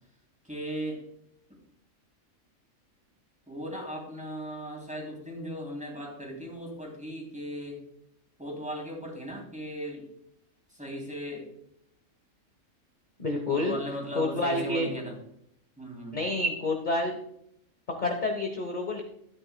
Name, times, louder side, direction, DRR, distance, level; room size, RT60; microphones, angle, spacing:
voice 1, 0.4-1.0 3.5-7.8 8.4-10.1 10.7-11.5 13.5-15.1 15.8-16.2, equal, 5° right, -1 dB, 3.0 m, -37 dB
voice 2, 13.2-13.8 14.1-14.9 16.1-17.2 18.0-19.0, left 2 dB, 35° left, 3 dB, 1.1 m, -28 dB
11.5 x 9.6 x 2.2 m, 0.73 s
omnidirectional pair, 1.4 m